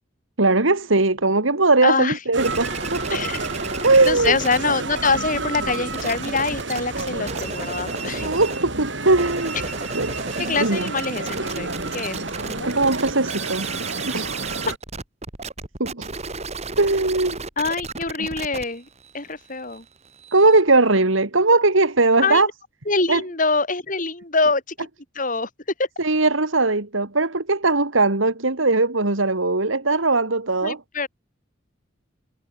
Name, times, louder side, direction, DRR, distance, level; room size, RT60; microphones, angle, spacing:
voice 1, 0.4-3.2 3.8-4.4 4.6-4.8 8.2-9.6 9.9-10.9 12.6-13.7 14.0-14.3 15.8-16.1 16.8-17.4 20.3-22.5 23.1-23.2 26.0-30.8, right 3 dB, 85° right, 2.4 m, -19 dB
voice 2, 1.8-2.2 3.1-3.5 4.0-8.3 10.4-12.9 17.6-18.9 19.1-19.8 22.2-22.5 22.9-24.9 25.2-25.5 25.8-25.9 30.6-31.1, left 4 dB, 40° left, 4.5 m, -25 dB
sound 1, 2.3-14.8, right 2 dB, 65° right, 8.0 m, -31 dB
sound 2, 2.4-4.6 4.8-8.7 9.1-20.6, right 4 dB, 35° right, 2.3 m, -34 dB
head